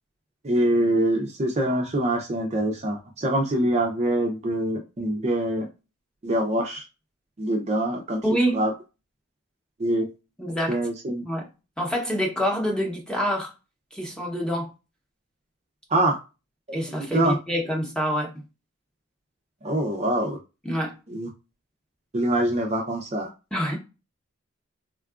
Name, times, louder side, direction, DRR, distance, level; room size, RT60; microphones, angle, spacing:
voice 1, 0.4-5.7 6.2-6.8 7.4-8.2 8.5-8.7 9.8-10.1 10.7-11.2 15.9-16.2 17.1-17.4 19.6-20.4 21.1-21.3 22.1-23.3, right 1 dB, 35° right, 0.5 m, -24 dB
voice 2, 8.2-8.6 10.4-10.8 11.2-11.5 11.8-13.5 13.9-14.7 16.7-18.3 20.6-20.9 23.5-23.8, equal, 5° left, 0.8 m, -26 dB
3.6 x 2.3 x 2.4 m
head